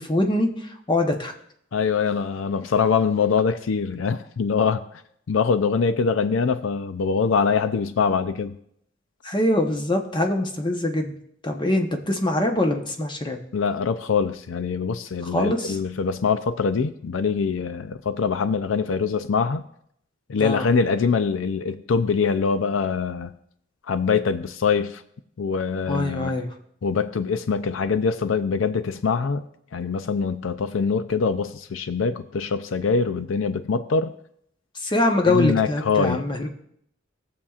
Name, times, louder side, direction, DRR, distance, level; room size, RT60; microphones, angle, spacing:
voice 1, 0.0-1.3 9.2-11.1 11.4-13.4 15.3-15.8 20.4-20.7 25.9-26.5 34.7-36.5, left 1 dB, 25° left, 4 dB, 0.9 m, -23 dB
voice 2, 1.7-4.8 5.3-8.5 13.5-19.6 20.3-23.3 23.9-25.0 25.4-26.3 26.8-29.4 29.7-34.1 35.3-36.2, left 5 dB, 80° left, 11 dB, 0.5 m, -23 dB
19.0 x 7.2 x 2.4 m, 0.70 s
head